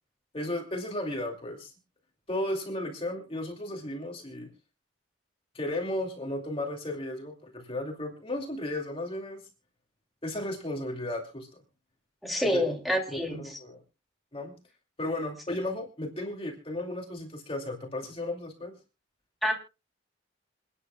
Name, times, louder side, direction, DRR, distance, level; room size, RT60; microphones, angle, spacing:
voice 1, 0.3-1.7 2.3-4.5 5.5-9.4 10.2-11.5 12.5-12.7 13.1-13.8 14.3-14.5 15.0-18.7, left 1 dB, 25° left, 2 dB, 2.6 m, -34 dB
voice 2, 12.2-13.4 19.4-19.5, equal, ahead, 1 dB, 2.8 m, -27 dB
28.0 x 10.0 x 2.3 m, 0.30 s
head